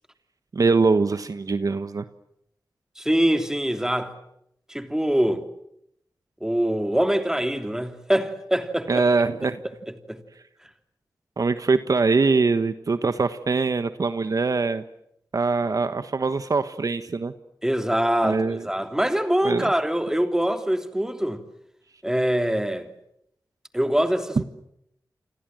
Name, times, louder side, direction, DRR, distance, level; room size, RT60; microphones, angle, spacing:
voice 1, 0.5-2.0 8.9-9.6 11.4-14.8 15.3-17.3 18.2-18.6 19.4-19.7, right 4 dB, 55° right, 1.3 m, -23 dB
voice 2, 3.0-4.2 4.7-5.4 6.4-9.0 9.9-10.2 17.6-21.4 22.0-22.9 23.7-24.4, right 1 dB, 10° right, 3.1 m, -24 dB
29.0 x 25.5 x 7.7 m
wide cardioid pair, 70°, 7 cm